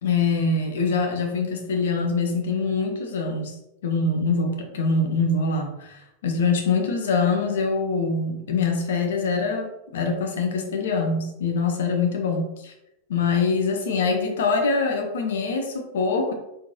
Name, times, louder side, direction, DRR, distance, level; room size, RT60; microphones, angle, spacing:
voice 1, 0.0-3.5 3.8-12.7 13.1-16.3, left 4 dB, 60° left, 3 dB, 0.8 m, -24 dB
4.2 x 3.8 x 2.8 m, 0.85 s
figure-of-eight pair, 90°, 0 cm